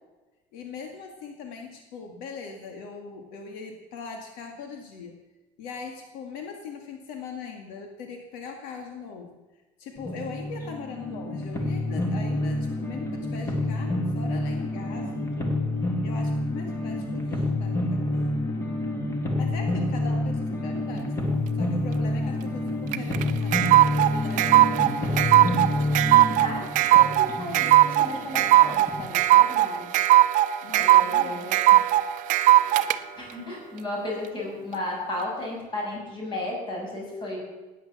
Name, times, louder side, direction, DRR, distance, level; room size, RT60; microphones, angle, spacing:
voice 1, 0.5-5.2 5.6-9.4 9.8-15.7 16.0-18.3 19.3-25.6 30.6-31.5, left 5 dB, 90° left, 3 dB, 2.1 m, -40 dB
sound 1, 10.0-29.1, left 1 dB, 20° left, 2.2 m, -28 dB
sound 2, 22.9-33.0, right 14 dB, 65° right, 0.7 m, -19 dB
voice 2, 26.9-29.9 30.4-32.0 32.6-37.4, left 1 dB, 35° left, -1 dB, 6.9 m, -34 dB
17.0 x 10.0 x 7.3 m, 1.1 s
cardioid pair, 145°, 14 cm